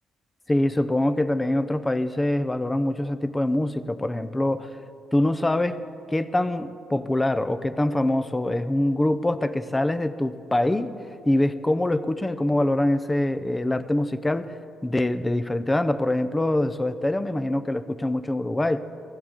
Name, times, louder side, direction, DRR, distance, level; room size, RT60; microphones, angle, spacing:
voice 1, 0.5-4.7 5.1-5.8 6.1-10.9 11.3-14.6 14.8-18.8, left 1 dB, 15° left, 12 dB, 0.6 m, -24 dB
17.0 x 15.5 x 4.4 m, 2.6 s
cardioid pair, 90°, 0 cm